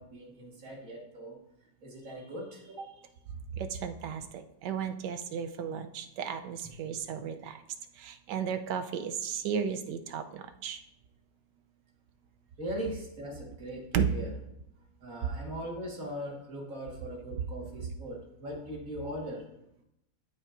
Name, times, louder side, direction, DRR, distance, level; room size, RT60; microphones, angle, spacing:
voice 1, 0.0-1.4 1.8-2.9 7.2-7.3 12.6-14.3 15.0-19.4, equal, 50° right, -1 dB, 1.9 m, -40 dB
voice 2, 3.5-7.6 7.9-10.8 13.9-14.1, right 7 dB, 75° right, 8 dB, 1.2 m, -34 dB
13.0 x 5.4 x 2.5 m, 0.82 s
omnidirectional pair, 2.0 m